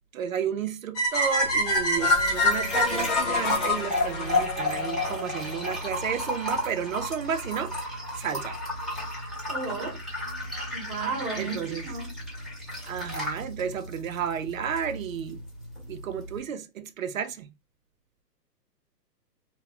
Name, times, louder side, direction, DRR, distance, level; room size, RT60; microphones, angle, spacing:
voice 1, 0.1-7.7 8.2-8.6 11.4-11.9 12.8-15.4 15.9-17.5, right 8 dB, 55° right, 0.5 m, -32 dB
sound 1, 1.0-5.1, left 1 dB, 25° left, 0.9 m, -25 dB
sound 2, 1.4-16.4, left 1 dB, ahead, 1.1 m, -34 dB
Wind instrument woodwind instrument, 1.9-5.9, left 5 dB, 75° left, 0.8 m, -42 dB
voice 2, 9.5-10.0 10.7-12.1, right 4 dB, 25° right, 0.9 m, -33 dB
3.0 x 2.1 x 2.8 m
hypercardioid pair, 130°, 50 cm